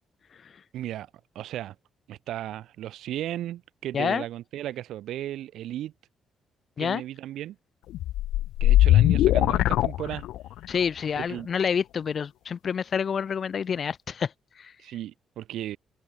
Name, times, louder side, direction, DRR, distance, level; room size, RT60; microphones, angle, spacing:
voice 1, 0.7-1.1 1.3-1.8 2.1-5.9 6.8-7.6 8.6-10.2 11.2-11.5 14.8-15.8, right 13 dB, 80° right, 4.3 m, -35 dB
voice 2, 3.9-4.2 6.8-7.0 10.7-14.3 14.6-14.7, left 7 dB, 50° left, 0.6 m, -28 dB
sound 1, 7.9-10.7, left 14 dB, 85° left, 0.7 m, -20 dB
cardioid pair, 90°, 0 cm